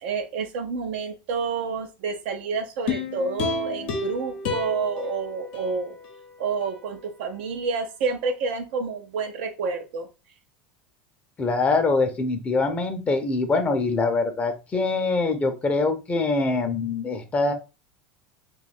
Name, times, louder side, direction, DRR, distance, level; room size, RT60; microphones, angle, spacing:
voice 1, 0.0-5.9 6.4-10.1, right 5 dB, 75° right, 4 dB, 0.5 m, -29 dB
sound 1, 2.9-6.2 6.6-6.7, left 4 dB, 75° left, 0.8 m, -31 dB
voice 2, 11.4-17.5, left 3 dB, 25° left, 7 dB, 0.6 m, -24 dB
2.6 x 2.3 x 4.1 m, 0.29 s
hypercardioid pair, 100°, 6 cm